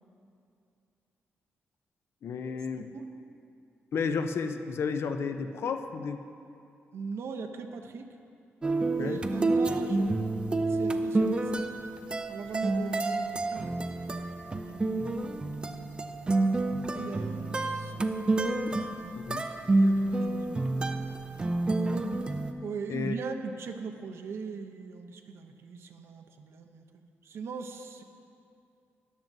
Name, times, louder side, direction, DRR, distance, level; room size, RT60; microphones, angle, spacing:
voice 1, 2.2-2.9 3.9-6.2 9.0-9.2 19.2-19.5 22.9-23.1, left 5 dB, 65° left, 8 dB, 0.5 m, -32 dB
voice 2, 2.8-3.1 6.9-8.2 9.0-10.4 10.7-11.5 12.3-14.3 14.6-16.0 16.9-18.3 18.7-19.2 19.8-20.5 22.6-26.9 27.2-28.0, right 5 dB, 65° right, 5 dB, 0.7 m, -40 dB
sound 1, 8.6-22.5, right 2 dB, 20° right, 0.4 m, -29 dB
13.5 x 10.5 x 2.7 m, 2.6 s
wide cardioid pair, 130°, 5 cm